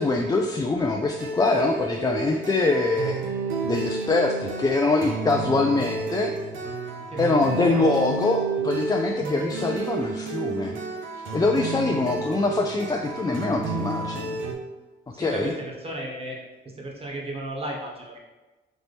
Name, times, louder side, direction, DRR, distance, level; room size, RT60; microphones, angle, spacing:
voice 1, 0.0-3.2 3.6-6.3 7.2-10.8 11.3-14.4 15.2-15.5, left 3 dB, 20° left, 1 dB, 0.3 m, -24 dB
sound 1, 1.2-14.5, right 4 dB, 75° right, 0.7 m, -31 dB
voice 2, 7.1-7.8 15.1-16.4 16.8-18.2, right 1 dB, 30° right, -2 dB, 1.1 m, -34 dB
4.1 x 3.0 x 3.4 m, 1.2 s
cardioid pair, 90°, 20 cm